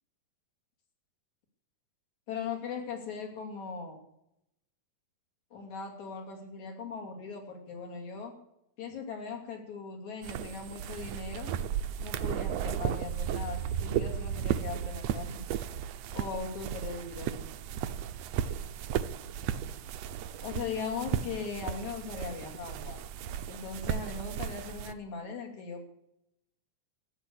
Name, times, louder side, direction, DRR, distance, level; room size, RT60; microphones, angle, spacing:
voice 1, 2.3-4.0 5.5-8.4 8.8-11.5 12.0-15.4 16.1-17.5 20.4-23.0 23.5-25.9, left 5 dB, 65° left, 2 dB, 4.1 m, -39 dB
sound 1, 10.2-24.9, right 9 dB, 70° right, 1.7 m, -35 dB
14.5 x 10.5 x 8.4 m, 0.80 s
omnidirectional pair, 3.5 m